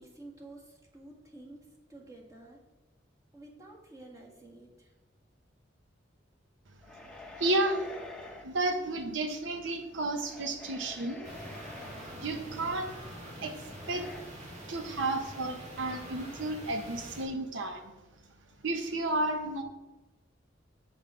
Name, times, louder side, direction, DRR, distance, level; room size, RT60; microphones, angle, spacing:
voice 1, 0.0-1.6 1.9-2.6 3.3-4.9, right 2 dB, 15° right, -1 dB, 1.6 m, -50 dB
sound 1, 6.8-8.5 10.0-12.2 13.8-14.2, left 2 dB, 5° left, 0.9 m, -47 dB
voice 2, 7.4-7.9 8.4-11.3 12.2-12.9 13.4-14.1 14.7-17.9 18.6-19.6, right 2 dB, 80° right, 6 dB, 0.8 m, -32 dB
sound 2, 11.2-17.3, equal, 40° right, 1.9 m, -45 dB
8.0 x 5.7 x 4.9 m, 1.1 s
head